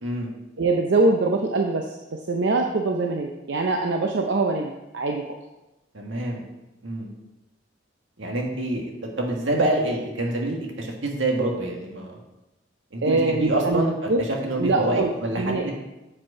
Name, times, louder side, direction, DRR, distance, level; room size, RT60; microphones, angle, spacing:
voice 1, 0.6-1.9 2.1-5.2 13.0-14.2 14.6-15.1 15.4-15.7, right 3 dB, 65° right, 2 dB, 0.6 m, -23 dB
voice 2, 5.9-6.4 6.8-7.1 8.2-12.2 12.9-15.7, right 1 dB, 85° right, 0 dB, 1.6 m, -26 dB
7.4 x 5.2 x 4.8 m, 0.99 s
head